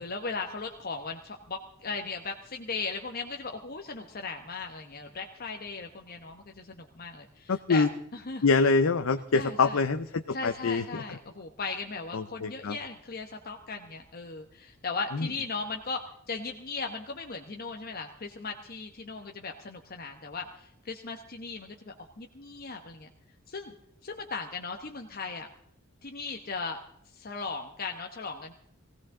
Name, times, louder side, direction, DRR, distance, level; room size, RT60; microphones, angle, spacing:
voice 1, 0.0-7.9 8.1-8.4 9.4-9.8 10.3-16.0 16.3-23.1 23.5-23.7 24.0-25.5 26.0-26.8 27.1-28.5, left 4 dB, 45° left, 4 dB, 1.1 m, -37 dB
voice 2, 7.5-7.9 8.4-11.2 12.1-12.8 15.1-15.3, left 4 dB, 85° left, 8 dB, 0.7 m, -25 dB
19.0 x 16.0 x 3.8 m, 0.73 s
head